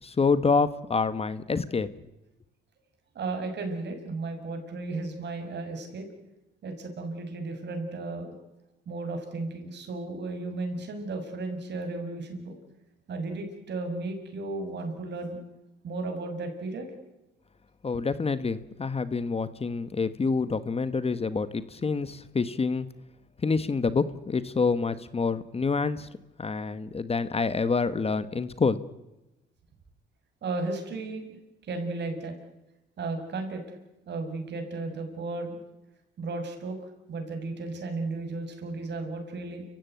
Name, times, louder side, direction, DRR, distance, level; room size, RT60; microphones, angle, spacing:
voice 1, 0.0-1.9 17.8-22.9 23.4-26.1 26.4-28.8, left 4 dB, 30° left, 14 dB, 1.2 m, -27 dB
voice 2, 3.1-6.1 6.6-8.3 8.9-12.6 13.1-15.4 15.8-16.9 30.4-31.2 31.6-32.3 33.0-33.6 34.1-35.6 36.2-36.8 37.1-39.7, right 3 dB, 60° right, 5 dB, 6.4 m, -34 dB
29.5 x 15.5 x 9.2 m, 0.97 s
cardioid pair, 90°, 20 cm